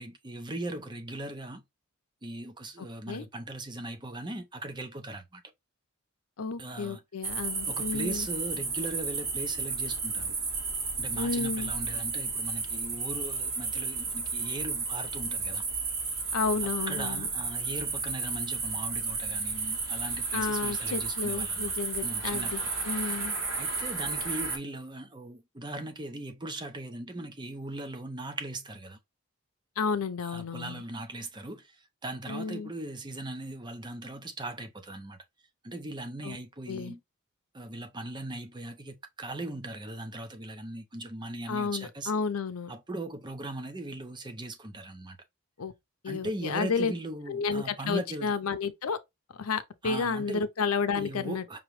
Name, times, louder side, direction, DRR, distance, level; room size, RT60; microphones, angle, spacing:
voice 1, 0.0-1.6 2.2-5.4 6.6-7.0 7.7-10.3 11.0-15.6 16.6-21.7 22.0-22.7 23.6-29.0 30.2-31.8 32.0-35.2 35.6-37.0 37.5-42.1 42.7-45.2 46.1-48.3 49.8-50.4 50.9-51.6, right 1 dB, 20° right, 0.7 m, -39 dB
voice 2, 2.8-3.3 6.4-8.3 11.2-11.7 16.3-17.3 20.3-23.4 29.8-30.8 32.3-32.7 36.2-36.4 36.7-37.0 41.5-42.7 45.6-45.7 46.0-46.9 47.3-49.0 49.3-51.4, left 5 dB, 90° left, 0.7 m, -31 dB
sound 1, 7.2-24.6, right 4 dB, 75° right, 2.5 m, -32 dB
5.5 x 3.0 x 3.2 m
head